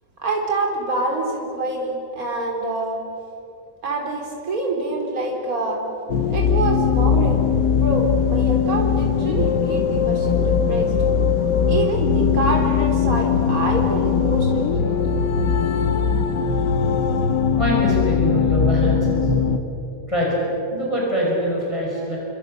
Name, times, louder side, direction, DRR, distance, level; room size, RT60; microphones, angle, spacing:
voice 1, 0.2-3.0 3.8-5.8 6.3-10.9 11.7-15.4, right 2 dB, 50° right, 0 dB, 4.3 m, -26 dB
sound 1, 6.1-19.6, left 6 dB, 75° left, 1.9 m, -20 dB
voice 2, 17.5-19.4 20.1-20.4 20.7-22.2, equal, 15° left, -4 dB, 5.4 m, -23 dB
28.5 x 25.5 x 6.7 m, 2.9 s
omnidirectional pair, 1.9 m